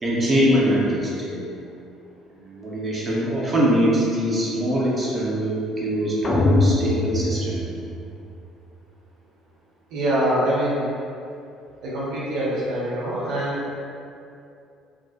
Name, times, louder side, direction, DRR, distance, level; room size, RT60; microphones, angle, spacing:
voice 1, 0.0-1.4 2.3-7.6, equal, 25° right, -6 dB, 0.7 m, -23 dB
sound 1, 6.2-8.4, left 1 dB, 30° left, 0.4 m, -22 dB
voice 2, 9.9-10.9 11.8-13.7, right 1 dB, 65° right, -8 dB, 0.5 m, -24 dB
2.4 x 2.1 x 2.6 m, 2.6 s
figure-of-eight pair, 55°, 0 cm